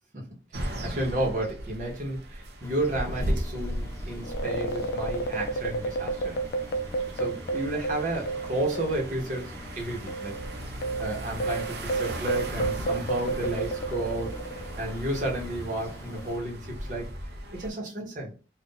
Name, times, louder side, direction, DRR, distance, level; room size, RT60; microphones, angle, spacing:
voice 1, 0.5-6.3 7.2-10.3 11.0-17.1 17.5-18.3, right 1 dB, 45° right, 1.0 m, -32 dB
sound 1, 0.5-17.7, right 1 dB, 65° right, 0.6 m, -37 dB
Engine, 2.6-16.4, equal, 15° left, 0.6 m, -45 dB
sound 2, 4.2-9.1 9.3-9.5 10.1-14.8, right 3 dB, 60° left, 0.4 m, -31 dB
2.6 x 2.4 x 3.7 m
head